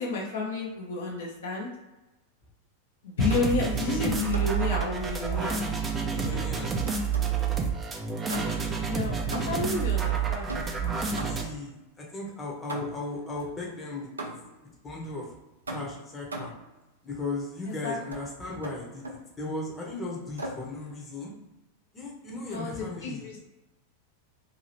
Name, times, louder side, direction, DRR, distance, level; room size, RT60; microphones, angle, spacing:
voice 1, 0.0-1.7 3.0-5.6 8.9-10.7 17.7-18.0 22.5-23.4, left 3 dB, 60° left, -3 dB, 0.7 m, -31 dB
sound 1, 3.2-11.4, right 6 dB, 20° right, 0.5 m, -29 dB
sound 2, 3.3-3.6 4.3-4.7 6.3-7.4 8.3-8.8 9.3-9.8 10.5-11.6 12.7-13.2 14.2-14.6 15.7-16.7 18.1-18.3 18.6-19.3 20.4-20.7, right 1 dB, 75° right, 0.5 m, -39 dB
voice 2, 6.0-6.7 11.2-14.1 14.8-15.3 15.7-16.5 17.0-19.0 19.4-21.3 21.9-23.4, left 2 dB, 20° left, -3 dB, 0.8 m, -36 dB
2.8 x 2.7 x 2.8 m, 1.0 s
figure-of-eight pair, 90°, 0 cm